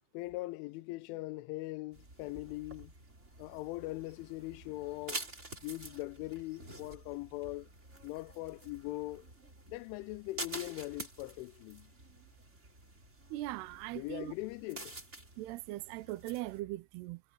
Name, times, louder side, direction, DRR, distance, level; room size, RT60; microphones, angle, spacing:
voice 1, 0.1-2.9 3.4-5.2 5.6-7.7 8.0-9.3 9.7-11.9 13.9-15.0, left 19 dB, 85° left, 3.1 m, -41 dB
sound 1, 1.9-16.6, right 2 dB, 15° right, 3.8 m, -48 dB
voice 2, 13.3-14.3 15.4-17.2, right 17 dB, 75° right, 2.6 m, -40 dB
omnidirectional pair, 5.4 m